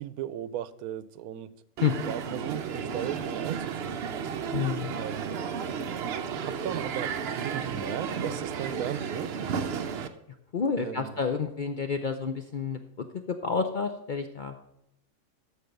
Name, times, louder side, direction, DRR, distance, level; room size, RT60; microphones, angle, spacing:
voice 1, 0.0-1.5 2.0-4.2 5.0-5.5 6.0-9.8 10.8-11.2, right 11 dB, 85° right, 1.1 m, -37 dB
Crowd, 1.8-10.1, right 6 dB, 55° right, 0.8 m, -33 dB
voice 2, 4.5-5.0 10.5-14.5, left 5 dB, 55° left, 0.5 m, -29 dB
13.5 x 4.6 x 6.5 m
omnidirectional pair, 1.5 m